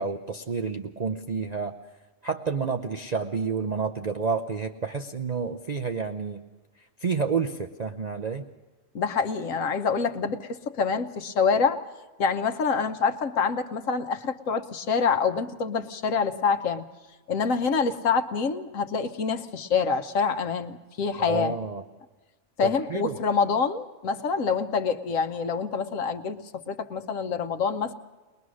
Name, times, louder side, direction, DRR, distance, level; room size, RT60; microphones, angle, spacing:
voice 1, 0.0-1.8 2.2-6.4 7.0-8.4 21.2-21.8 22.6-23.2, right 5 dB, 40° right, 4 dB, 0.7 m, -29 dB
voice 2, 8.9-11.8 12.2-16.8 17.3-21.5 22.6-27.9, left 5 dB, 80° left, 7 dB, 1.4 m, -26 dB
21.5 x 21.0 x 6.3 m, 1.2 s
omnidirectional pair, 1.3 m